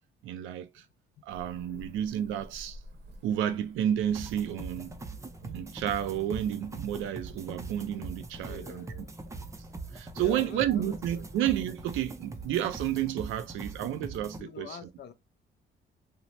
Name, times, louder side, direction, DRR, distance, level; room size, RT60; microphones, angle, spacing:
voice 1, 0.2-0.8 1.2-2.8 3.2-5.0 5.4-8.9 9.9-14.8, right 11 dB, 85° right, 0.4 m, -31 dB
Cricket / Motor vehicle (road), 1.3-13.0, right 1 dB, 60° right, 0.7 m, -55 dB
sound 1, 4.1-14.4, right 3 dB, 15° right, 0.4 m, -42 dB
voice 2, 8.4-9.1 10.1-11.3 14.4-15.1, left 7 dB, 55° left, 0.5 m, -45 dB
2.8 x 2.0 x 2.9 m
cardioid pair, 90°, 20 cm